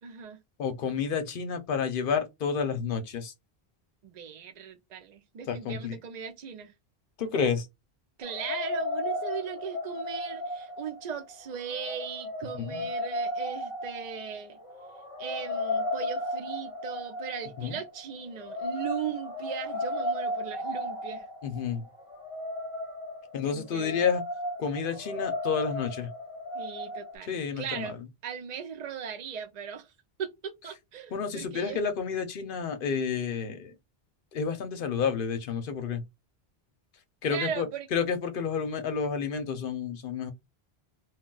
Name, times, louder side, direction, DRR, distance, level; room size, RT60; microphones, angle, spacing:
voice 1, 0.0-0.4 4.0-6.7 8.2-14.6 15.2-21.3 23.4-24.0 26.5-28.0 28.2-29.9 30.2-31.8 37.3-37.9, right 7 dB, 50° right, 0.6 m, -38 dB
voice 2, 0.6-3.3 5.5-6.0 7.2-7.7 12.5-12.9 17.6-17.8 21.4-21.8 23.3-24.2 24.6-26.1 27.3-28.0 31.1-33.7 34.3-36.0 37.2-40.3, left 6 dB, 60° left, 0.8 m, -30 dB
sound 1, 8.2-27.2, left 1 dB, 35° left, 0.8 m, -35 dB
2.2 x 2.2 x 3.7 m
omnidirectional pair, 1.0 m